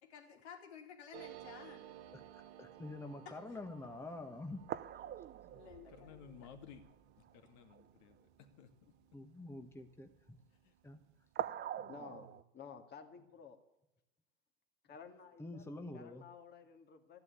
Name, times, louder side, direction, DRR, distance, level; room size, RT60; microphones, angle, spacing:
voice 1, 0.0-1.8 3.3-3.4 5.5-6.5, left 7 dB, 80° left, 4 dB, 3.4 m, -54 dB
sound 1, 1.1-10.3 10.6-10.7 10.9-11.4, right 12 dB, 75° right, 1.7 m, -57 dB
voice 2, 2.1-4.6 9.1-10.1 10.8-11.0 15.4-16.3, left 2 dB, 5° left, 6 dB, 1.3 m, -47 dB
sound 2, 3.6-3.7 4.2-4.3 4.7-7.0 7.3-7.4 7.7-7.9 11.4-12.4, right 11 dB, 30° right, 0.8 m, -43 dB
voice 3, 5.6-6.8 7.2-8.2 8.6-8.7 10.6-10.7 11.8-12.4, left 7 dB, 55° left, 7 dB, 2.5 m, -57 dB
voice 4, 11.9-12.3 12.5-13.6 14.8-17.2, left 6 dB, 30° left, 5 dB, 2.1 m, -53 dB
13.5 x 11.0 x 8.3 m, 0.91 s
hypercardioid pair, 105°, 33 cm